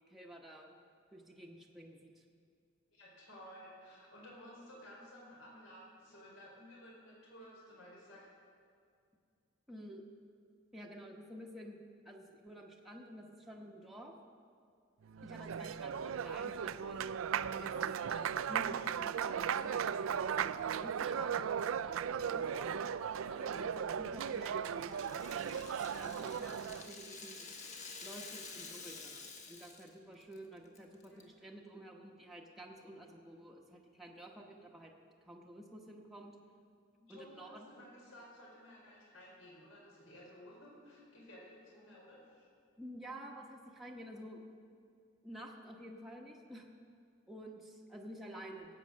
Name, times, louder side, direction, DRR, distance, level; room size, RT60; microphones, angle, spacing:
voice 1, 0.1-0.7 1.1-2.2 9.7-10.0 10.7-11.8 12.0-14.1 15.2-17.0 17.6-17.7 18.0-22.8 23.3-27.5 28.0-34.9 35.2-36.4 37.1-37.7 42.8-44.4 45.2-46.7 47.3-48.7, right 1 dB, ahead, -2 dB, 1.0 m, -51 dB
voice 2, 2.9-8.3 31.0-31.2 37.0-42.5, equal, 80° left, -4 dB, 4.4 m, -55 dB
Applause, 15.1-26.9, right 8 dB, 80° right, 0.4 m, -37 dB
Rattle (instrument), 24.1-29.9 30.2-30.4 30.7-31.2, left 4 dB, 35° left, 1.2 m, -50 dB
17.0 x 8.5 x 6.4 m, 2.3 s
head